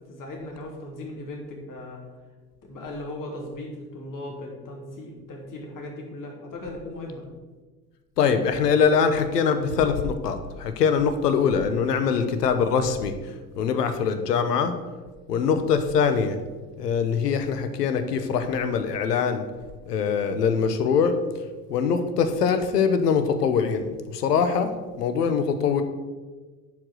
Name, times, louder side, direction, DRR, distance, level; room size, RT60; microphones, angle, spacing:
voice 1, 0.0-2.1 2.6-7.2, left 1 dB, 40° left, 0 dB, 3.0 m, -37 dB
voice 2, 8.2-13.1 13.6-14.7 15.3-16.4 16.8-19.4 19.9-21.2 21.7-24.7 25.0-25.8, left 6 dB, 85° left, 9 dB, 1.1 m, -23 dB
10.5 x 5.1 x 6.3 m, 1.3 s
hypercardioid pair, 70°, 47 cm